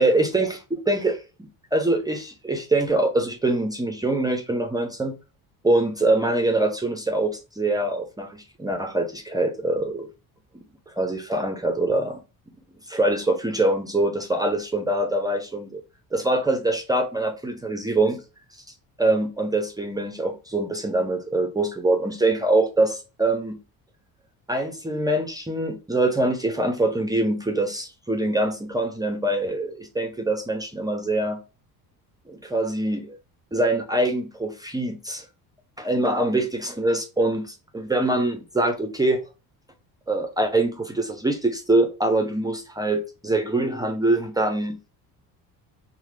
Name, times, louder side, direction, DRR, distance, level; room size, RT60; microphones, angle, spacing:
voice 1, 0.0-5.2 5.6-10.1 10.9-12.2 12.9-15.8 16.1-18.2 19.0-23.6 24.5-31.4 32.3-33.2 33.5-35.2 35.8-39.3 40.1-44.8, right 2 dB, 10° right, 0.4 m, -24 dB
3.2 x 2.0 x 3.1 m
cardioid pair, 115°, 36 cm